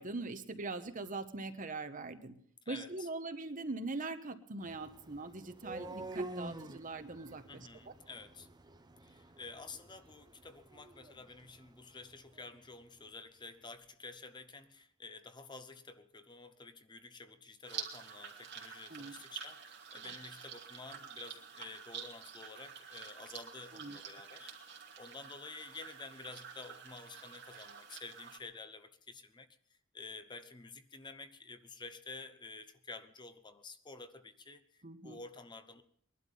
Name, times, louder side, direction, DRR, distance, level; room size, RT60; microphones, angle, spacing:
voice 1, 0.0-2.4 2.7-7.9 18.9-19.1 23.7-24.0 34.8-35.2, right 3 dB, 40° right, 1.1 m, -42 dB
voice 2, 2.7-3.1 7.5-8.5 9.0-29.5 29.9-35.8, left 3 dB, 20° left, 0.8 m, -50 dB
sound 1, 4.6-12.6, right 2 dB, 20° right, 1.0 m, -48 dB
sound 2, 17.6-28.4, right 7 dB, 60° right, 2.6 m, -48 dB
21.0 x 11.5 x 5.5 m
head